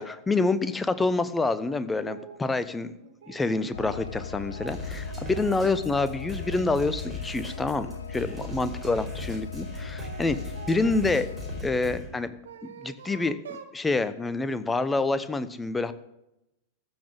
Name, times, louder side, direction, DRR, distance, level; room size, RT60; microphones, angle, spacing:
voice 1, 0.0-2.9 3.3-10.4 10.7-11.3 11.6-12.3 12.6-15.9, left 3 dB, 10° left, 13 dB, 0.8 m, -27 dB
sound 1, 2.0-2.4 2.9-7.0 7.4-8.9 9.6-11.3 12.1-13.8, right 7 dB, 65° right, 1.4 m, -47 dB
sound 2, 3.7-11.6, left 7 dB, 70° left, 0.7 m, -38 dB
sound 3, 4.7-12.1, right 1 dB, 10° right, 4.4 m, -39 dB
14.5 x 6.3 x 8.1 m, 0.86 s
figure-of-eight pair, 90°, 0 cm